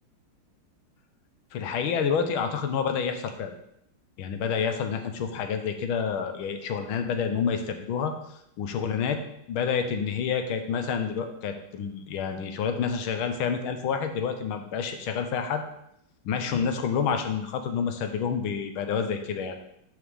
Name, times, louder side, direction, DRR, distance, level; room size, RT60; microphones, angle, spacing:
voice 1, 1.5-3.5 4.2-8.1 8.6-9.2 9.5-15.6 16.2-19.6, left 6 dB, 80° left, 7 dB, 1.6 m, -28 dB
11.0 x 4.9 x 3.5 m, 0.77 s
omnidirectional pair, 2.2 m